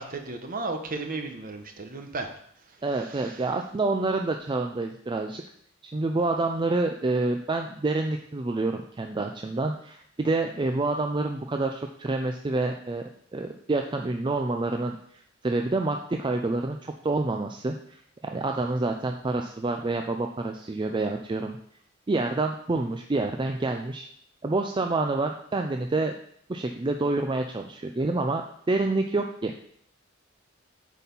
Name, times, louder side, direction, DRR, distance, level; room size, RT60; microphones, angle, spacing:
voice 1, 0.0-2.3 3.1-3.4, right 3 dB, 45° right, 5 dB, 1.0 m, -34 dB
voice 2, 2.8-5.4 5.8-13.0 13.3-15.0 15.4-21.6 22.1-24.1 24.4-26.1 26.5-29.5, right 2 dB, 25° right, 4 dB, 0.4 m, -28 dB
8.3 x 4.2 x 5.4 m, 0.66 s
head